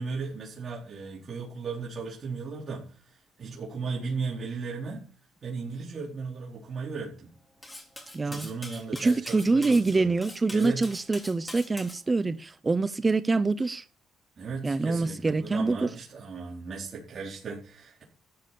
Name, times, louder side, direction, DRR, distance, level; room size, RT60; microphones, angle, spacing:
voice 1, 0.0-5.1 5.4-7.3 8.2-10.1 10.5-10.9 14.4-18.0, right 4 dB, 45° right, 4.4 m, -36 dB
Cutlery silverware, 7.6-12.0, left 1 dB, 15° left, 4.4 m, -43 dB
voice 2, 8.1-8.5 9.0-13.8 14.6-15.9, right 3 dB, 25° right, 0.7 m, -25 dB
13.5 x 7.4 x 7.0 m
cardioid pair, 95°, 0 cm